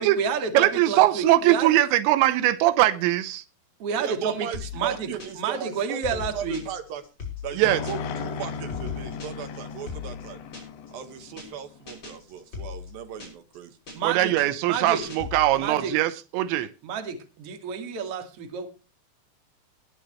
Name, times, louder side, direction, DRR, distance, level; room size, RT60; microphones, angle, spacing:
voice 1, 0.0-1.7 3.8-4.5 4.7-5.1 5.4-6.6 13.9-14.3 14.6-15.1 15.5-15.9 16.8-18.7, right 6 dB, 40° right, 2.4 m, -30 dB
voice 2, 0.5-3.4 7.6-7.8 14.0-16.7, right 15 dB, 85° right, 3.1 m, -21 dB
voice 3, 3.9-7.0 7.4-10.4 10.9-13.8, right 8 dB, 65° right, 3.0 m, -37 dB
sound 1, 4.5-5.6 5.9-8.2 8.5-10.9 11.2-11.6 11.9-13.6 13.9-15.7, left 5 dB, 25° left, 6.3 m, -38 dB
sound 2, 7.6-12.0, left 5 dB, 85° left, 4.0 m, -36 dB
20.5 x 9.8 x 3.1 m
omnidirectional pair, 5.1 m